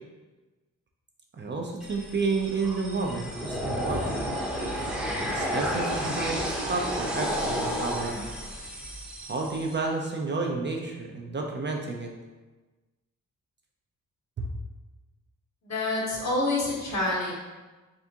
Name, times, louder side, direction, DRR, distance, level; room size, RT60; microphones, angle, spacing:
voice 1, 1.3-4.2 5.3-8.2 9.2-12.1 14.4-14.5, right 3 dB, 35° right, 0 dB, 0.5 m, -31 dB
sound 1, 1.8-9.8, equal, ahead, 0.7 m, -31 dB
voice 2, 15.6-17.3, left 2 dB, 50° left, -4 dB, 1.2 m, -27 dB
3.6 x 3.4 x 2.8 m, 1.2 s
cardioid pair, 85°, 33 cm